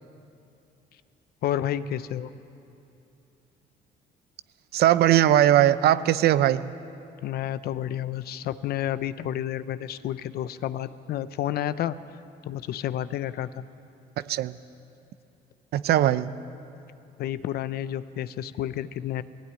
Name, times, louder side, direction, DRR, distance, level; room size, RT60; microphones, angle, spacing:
voice 1, 1.4-2.3 7.2-12.0 12.4-13.6 17.2-19.2, left 11 dB, 65° left, 14 dB, 0.8 m, -30 dB
voice 2, 4.7-6.7 14.3-14.6 15.7-16.3, right 12 dB, 70° right, 14 dB, 0.7 m, -20 dB
18.5 x 16.0 x 9.7 m, 2.8 s
cardioid pair, 110°, 17 cm